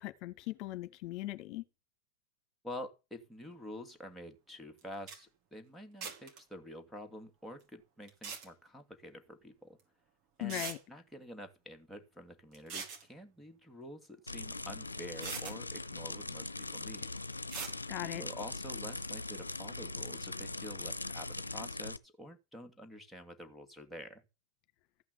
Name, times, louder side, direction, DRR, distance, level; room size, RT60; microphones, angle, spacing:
voice 1, 0.0-1.6 10.4-10.8 17.9-18.2, left 16 dB, 45° left, 1.7 m, -39 dB
voice 2, 2.6-9.8 10.4-17.1 18.0-24.2, left 1 dB, 5° left, 2.8 m, -48 dB
sound 1, 4.8-4.9 5.1-5.2 6.0-6.4 8.1-8.5 9.8-9.9 10.5-10.8 12.5-13.0 14.6-14.7 15.2-15.6 17.5-17.8, right 6 dB, 45° right, 4.3 m, -41 dB
sound 2, 14.3-22.0, left 2 dB, 90° left, 0.6 m, -41 dB
14.5 x 5.9 x 8.2 m
figure-of-eight pair, 90°, 0 cm